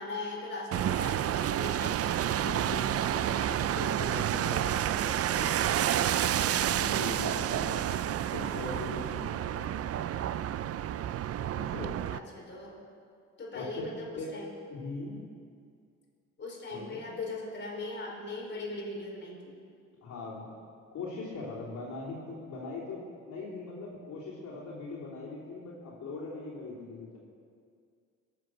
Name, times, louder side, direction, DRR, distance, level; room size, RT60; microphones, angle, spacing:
voice 1, 0.0-2.0 6.5-8.0 12.1-12.8 13.4-14.5 16.4-19.5, left 2 dB, 40° left, -3 dB, 4.8 m, -40 dB
sound 1, 0.7-12.2, right 11 dB, 50° right, 0.5 m, -30 dB
voice 2, 2.3-6.0 6.6-7.9 8.3-9.8 11.5-12.2 13.5-13.8 14.2-14.4 14.7-15.2 16.7-17.0 20.0-20.5 20.9-27.2, left 3 dB, 70° left, -7 dB, 3.6 m, -41 dB
22.5 x 7.9 x 6.3 m, 2.2 s
cardioid pair, 90°, 30 cm